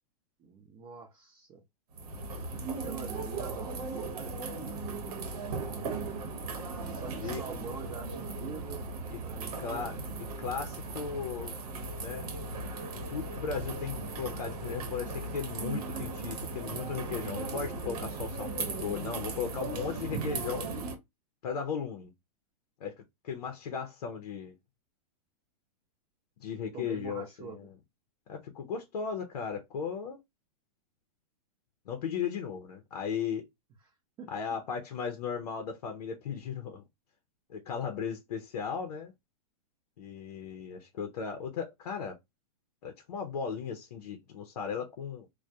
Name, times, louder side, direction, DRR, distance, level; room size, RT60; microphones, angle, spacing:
voice 1, 0.4-1.6 2.8-4.3 5.1-5.2 6.9-9.9 26.7-27.6 34.2-34.3, right 5 dB, 25° right, 0.5 m, -45 dB
sound 1, 1.9-21.0, right 3 dB, 75° right, 0.8 m, -37 dB
voice 2, 4.9-5.4 6.6-7.4 9.1-9.2 9.6-10.0 10.4-11.5 12.0-12.3 12.9-20.7 21.4-22.1 22.8-24.5 26.4-27.7 28.3-30.2 31.9-33.5 34.3-36.8 37.5-39.1 40.0-42.2 42.8-45.3, left 6 dB, 85° left, 0.6 m, -36 dB
2.2 x 2.1 x 2.6 m
supercardioid pair, 145°, 19 cm